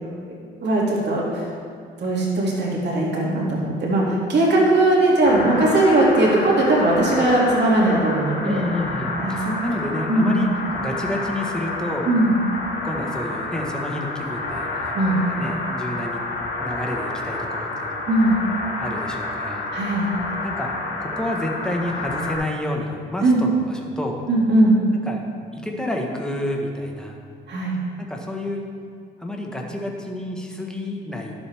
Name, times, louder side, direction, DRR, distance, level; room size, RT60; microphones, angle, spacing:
voice 1, 0.0-1.4 2.0-8.6 9.2-9.5 10.1-10.4 12.1-12.5 14.9-15.2 18.1-18.4 19.7-20.1 23.2-23.4 24.3-24.8 27.5-27.8, right 1 dB, 60° right, -4 dB, 2.5 m, -19 dB
sound 1, 5.2-22.4, left 2 dB, 80° left, 1.9 m, -29 dB
voice 2, 8.4-10.5 10.8-12.1 12.8-18.1 18.7-19.7 20.4-20.7 21.0-24.2 25.1-25.2 25.5-27.2 28.0-28.6 29.2-31.3, left 1 dB, 5° left, 0 dB, 1.3 m, -29 dB
11.5 x 7.3 x 3.5 m, 2.2 s
cardioid pair, 90°, 20 cm